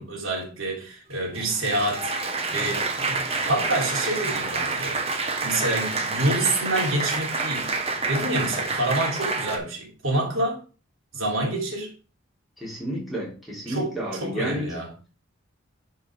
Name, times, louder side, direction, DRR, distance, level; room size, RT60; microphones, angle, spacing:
voice 1, 0.0-2.1 2.5-2.8 3.5-5.2 5.4-7.8 8.1-10.6 11.1-11.9 13.7-14.9, right 1 dB, 85° right, 3.4 m, -27 dB
Applause, 1.1-9.6, right 3 dB, 30° right, 1.3 m, -28 dB
voice 2, 12.6-14.7, right 1 dB, ahead, 3.8 m, -31 dB
10.5 x 5.0 x 4.8 m
head